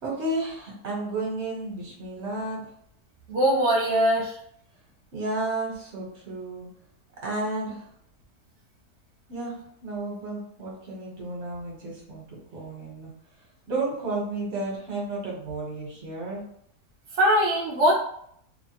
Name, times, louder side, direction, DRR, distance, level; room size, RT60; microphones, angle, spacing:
voice 1, 0.0-2.7 5.1-6.7 7.2-7.9 9.3-13.1 13.7-16.4, right 2 dB, 50° right, -4 dB, 1.1 m, -32 dB
voice 2, 3.3-4.4 17.1-17.9, equal, 65° right, -4 dB, 0.7 m, -21 dB
2.9 x 2.0 x 2.8 m, 0.68 s
omnidirectional pair, 1.7 m